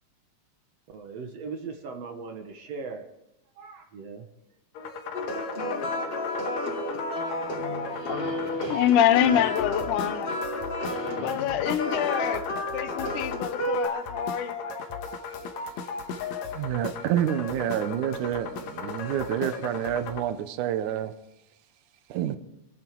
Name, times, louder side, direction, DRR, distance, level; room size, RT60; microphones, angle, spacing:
voice 1, 0.9-3.0 3.6-4.3, right 4 dB, 65° right, 5 dB, 2.2 m, -38 dB
sound 1, 4.8-20.2, left 4 dB, 70° left, 2.3 m, -36 dB
sound 2, 5.1-13.9, left 1 dB, 40° left, 3.2 m, -31 dB
sound 3, 7.4-10.4 10.8-11.8, left 2 dB, 45° right, 3.8 m, -41 dB
voice 2, 8.7-10.3 11.2-12.4 12.7-14.6, left 10 dB, 85° left, 12 dB, 2.3 m, -25 dB
voice 3, 16.5-21.1 22.1-22.4, right 10 dB, 85° right, 10 dB, 2.3 m, -28 dB
26.5 x 9.2 x 4.6 m, 0.89 s
omnidirectional pair, 3.5 m